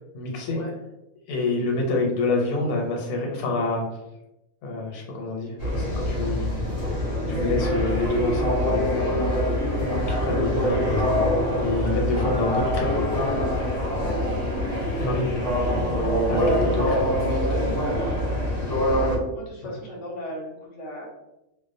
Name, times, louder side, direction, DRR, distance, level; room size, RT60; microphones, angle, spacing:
voice 1, 0.1-0.6 1.3-3.8 4.6-6.5 7.3-9.0 9.8-11.3 11.6-13.3 15.0-15.4 15.7-15.8 16.3-17.8 19.6-19.8, left 3 dB, 90° left, 0 dB, 1.1 m, -27 dB
sound 1, 5.6-19.2, equal, 45° left, 0.5 m, -24 dB
voice 2, 11.8-12.3 13.9-14.4 19.3-21.1, left 1 dB, 60° left, -2 dB, 0.9 m, -37 dB
2.5 x 2.0 x 2.5 m, 0.92 s
omnidirectional pair, 1.6 m